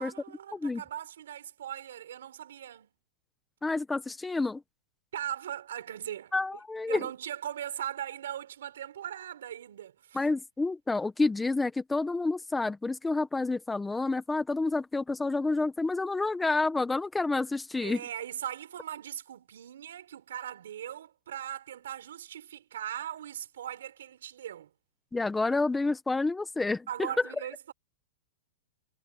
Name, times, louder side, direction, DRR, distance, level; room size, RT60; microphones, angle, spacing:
voice 1, 0.0-2.9 5.1-6.3 6.9-10.2 17.8-24.7 26.9-27.7, right 10 dB, 80° right, 5.4 m, -39 dB
voice 2, 3.6-4.6 6.3-7.0 10.1-18.0 25.1-26.9, left 3 dB, 5° left, 1.1 m, -29 dB
supercardioid pair, 165°, 0 cm